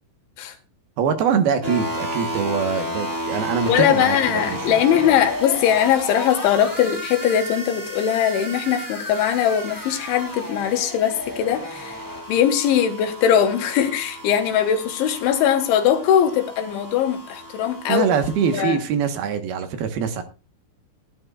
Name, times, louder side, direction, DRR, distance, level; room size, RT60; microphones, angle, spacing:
voice 1, 1.0-4.6 17.9-20.2, right 7 dB, 65° right, 2.9 m, -23 dB
sound 1, 1.6-18.6, equal, 10° right, 0.9 m, -33 dB
voice 2, 3.7-12.0 12.3-18.1 18.4-18.8, left 9 dB, 90° left, 3.9 m, -20 dB
18.5 x 10.5 x 2.4 m
omnidirectional pair, 5.2 m